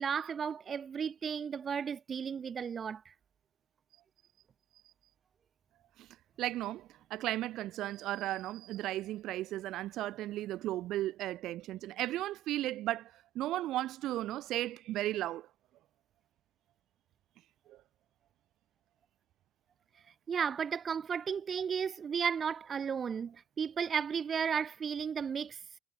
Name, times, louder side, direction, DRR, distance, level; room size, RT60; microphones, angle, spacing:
voice 1, 0.0-3.0 20.3-25.6, right 7 dB, 45° right, 7.9 m, -34 dB
voice 2, 6.4-15.5 17.7-17.8, right 15 dB, 75° right, 5.1 m, -35 dB
supercardioid pair, 80°, 0 cm